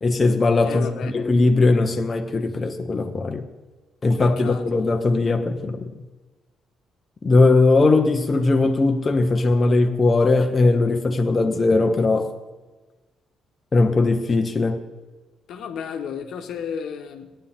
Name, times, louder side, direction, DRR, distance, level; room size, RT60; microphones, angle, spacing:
voice 1, 0.0-3.5 4.0-5.9 7.2-12.3 13.7-14.8, left 3 dB, 25° left, 1.0 m, -19 dB
voice 2, 0.6-1.1 4.2-4.6 15.5-17.3, left 7 dB, 75° left, 1.2 m, -33 dB
17.5 x 10.0 x 3.7 m
cardioid pair, 120°, 0 cm